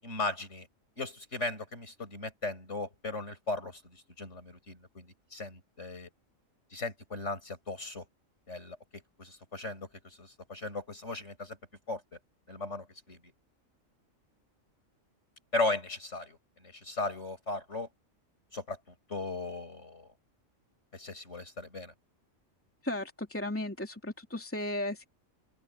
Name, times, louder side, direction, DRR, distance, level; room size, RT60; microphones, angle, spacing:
voice 1, 0.0-0.7 1.0-6.1 6.7-8.0 8.5-11.6 11.9-12.0 12.5-13.2 15.5-17.9 18.5-18.8 19.1-20.1 20.9-21.9, left 3 dB, 60° left, 6.6 m, -37 dB
voice 2, 22.8-25.1, left 1 dB, 10° left, 2.9 m, -35 dB
open air
omnidirectional pair, 1.4 m